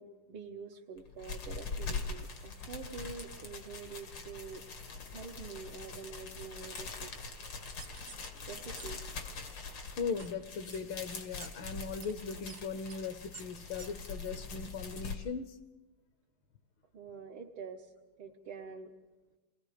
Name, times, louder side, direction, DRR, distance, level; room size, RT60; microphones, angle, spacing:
voice 1, 0.0-4.6 5.0-7.4 8.3-9.2 16.9-17.9 18.2-18.9, right 5 dB, 80° right, -3 dB, 2.2 m, -46 dB
sound 1, 1.0-15.2, left 4 dB, 90° left, 3.1 m, -43 dB
sound 2, 7.8-8.3 8.8-8.9 9.2-9.5 10.2-10.3 10.7-10.8 11.4-11.5 12.0-12.1 12.5-12.6 12.9-13.0 13.3-13.4 13.8-13.9 14.4-14.5, right 6 dB, 55° right, 0.7 m, -49 dB
voice 2, 9.9-15.6, left 5 dB, 70° left, 10 dB, 1.6 m, -39 dB
28.5 x 19.5 x 5.0 m, 1.2 s
omnidirectional pair, 2.3 m